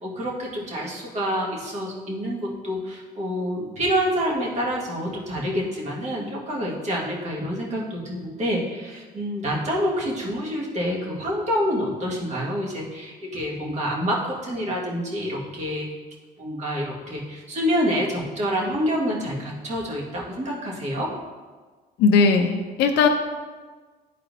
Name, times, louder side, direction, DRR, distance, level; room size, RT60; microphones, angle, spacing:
voice 1, 0.0-15.9 16.4-21.1, equal, 45° right, -4 dB, 1.8 m, -27 dB
voice 2, 22.0-23.1, left 5 dB, 85° left, 3 dB, 0.6 m, -18 dB
12.0 x 4.2 x 2.7 m, 1.4 s
cardioid pair, 110°, 17 cm